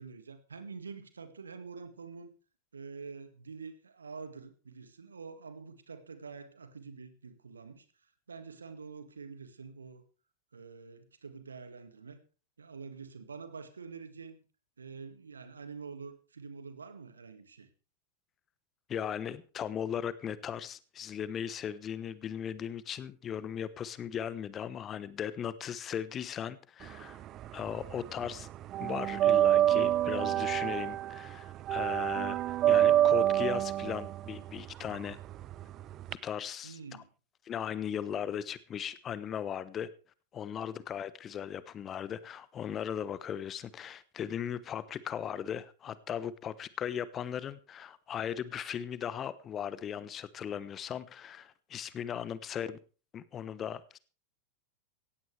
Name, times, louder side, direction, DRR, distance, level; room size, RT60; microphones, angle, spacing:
voice 1, 0.0-2.3 2.7-7.9 8.3-10.0 10.5-12.2 12.6-14.4 14.8-17.7 36.6-37.1, right 5 dB, 75° right, 10 dB, 2.0 m, -46 dB
voice 2, 18.9-27.2 27.5-28.5 28.8-35.2 36.1-36.8 37.5-39.9 40.3-52.8 53.1-54.0, left 9 dB, 25° left, 17 dB, 1.1 m, -37 dB
sound 1, 26.9-28.0 28.2-36.1, right 12 dB, 35° right, 0.6 m, -27 dB
17.5 x 15.5 x 3.4 m, 0.35 s
figure-of-eight pair, 90°, 0 cm